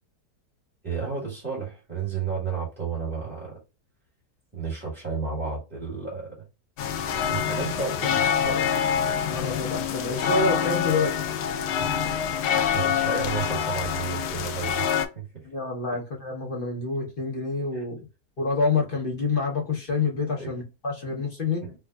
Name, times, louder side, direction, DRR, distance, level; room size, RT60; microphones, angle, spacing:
voice 1, 0.8-3.6 4.5-6.4 7.2-8.8 12.5-15.4 15.9-16.0 17.7-17.8 20.4-20.5 21.6-21.7, right 5 dB, 10° right, 1.4 m, -32 dB
sound 1, 6.8-15.1, left 8 dB, 90° left, 1.2 m, -26 dB
voice 2, 9.3-11.2 15.4-18.0 18.4-21.6, left 4 dB, 40° left, 1.0 m, -27 dB
4.5 x 2.4 x 2.3 m
omnidirectional pair, 1.7 m